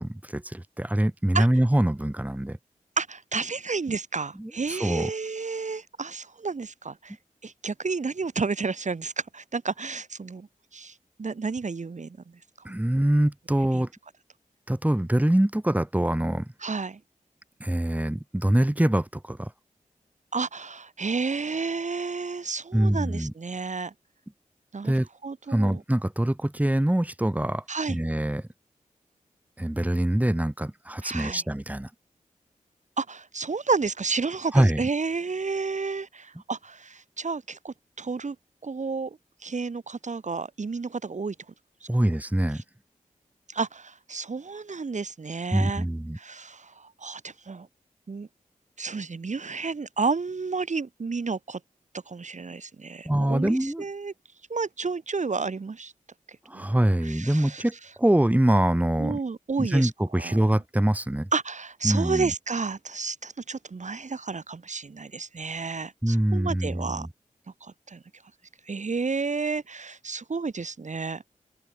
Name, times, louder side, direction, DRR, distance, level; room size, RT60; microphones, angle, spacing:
voice 1, 0.0-2.6 4.4-5.1 12.6-13.9 14.7-16.5 17.6-19.5 22.7-23.3 24.8-25.1 25.5-28.5 29.6-31.9 34.5-34.8 41.9-42.6 45.5-46.2 53.1-53.8 56.5-59.2 59.6-61.3 61.8-62.3 66.0-67.1, right 1 dB, 10° right, 2.3 m, -24 dB
voice 2, 3.0-7.1 7.4-10.5 10.7-10.9 11.2-12.2 13.7-13.8 16.6-17.0 20.3-23.9 24.7-24.9 25.2-25.8 27.7-28.0 31.0-31.4 33.0-38.4 38.6-39.2 39.4-41.3 43.5-45.8 46.1-47.7 48.1-48.3 48.8-51.6 52.1-54.1 54.5-55.9 56.5-56.7 57.0-57.6 59.0-59.9 60.2-60.5 61.3-67.1 67.6-68.0 68.7-71.2, right 4 dB, 60° right, 2.7 m, -31 dB
open air
cardioid pair, 50°, 14 cm